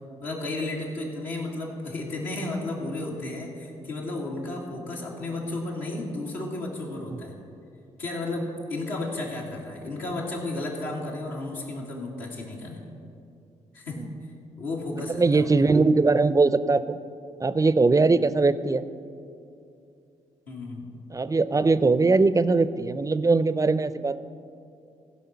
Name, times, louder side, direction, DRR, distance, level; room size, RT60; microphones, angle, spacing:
voice 1, 0.2-7.4 8.0-12.8 13.7-14.0 14.6-15.5 20.5-20.9, left 2 dB, 80° left, -4 dB, 2.2 m, -33 dB
voice 2, 15.1-17.0 17.4-18.8 21.1-24.2, right 3 dB, 25° right, 14 dB, 0.5 m, -21 dB
16.0 x 5.5 x 5.7 m, 2.5 s
hypercardioid pair, 45°, 15 cm